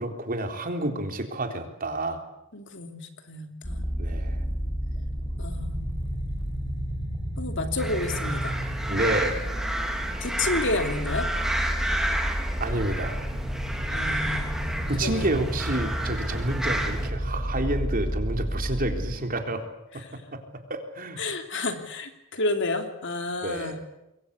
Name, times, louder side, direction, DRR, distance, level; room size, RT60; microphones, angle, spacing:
voice 1, 0.0-2.2 4.0-4.4 8.9-9.4 12.6-13.2 14.9-19.6 20.1-21.2 23.4-23.8, right 1 dB, 45° right, 5 dB, 3.7 m, -29 dB
voice 2, 2.5-3.9 5.4-6.0 7.4-8.6 10.2-11.3 13.9-14.6 15.0-15.3 21.2-23.8, left 2 dB, 60° left, 6 dB, 3.1 m, -30 dB
sound 1, 3.6-19.2, equal, 25° left, 7.1 m, -31 dB
sound 2, 7.8-17.1, right 1 dB, ahead, 3.4 m, -31 dB
26.5 x 22.5 x 8.4 m, 0.87 s
head